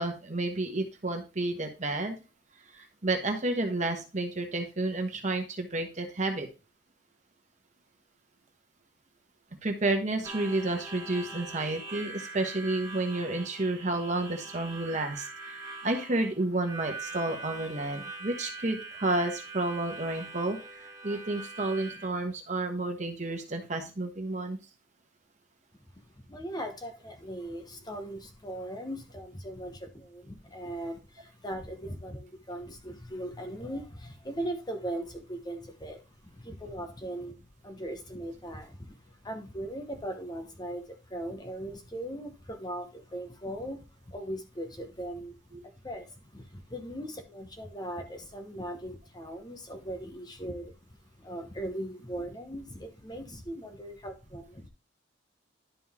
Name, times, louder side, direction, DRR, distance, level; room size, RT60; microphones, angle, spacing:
voice 1, 0.0-2.2 2.7-6.5 9.6-24.6 45.5-45.6, right 2 dB, 40° right, 4 dB, 1.2 m, -31 dB
Harmonica, 10.2-22.1, right 3 dB, 20° right, 1.1 m, -43 dB
voice 2, 26.0-37.4 37.6-54.7, right 1 dB, 20° left, 4 dB, 1.0 m, -39 dB
11.0 x 3.9 x 3.6 m, 0.30 s
head